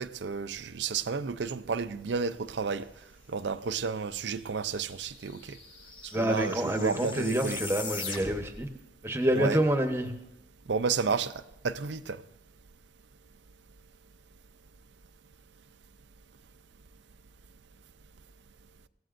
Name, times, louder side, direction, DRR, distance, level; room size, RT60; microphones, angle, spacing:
voice 1, 0.0-2.9 3.3-5.6 6.0-7.6 9.3-9.6 10.7-12.2, right 5 dB, 70° right, 0.5 m, -32 dB
sound 1, 4.1-4.2 4.4-8.6, left 4 dB, 30° left, 3.6 m, -41 dB
voice 2, 6.1-8.7 9.0-10.1, right 1 dB, 15° right, 1.0 m, -27 dB
22.0 x 17.0 x 2.6 m
head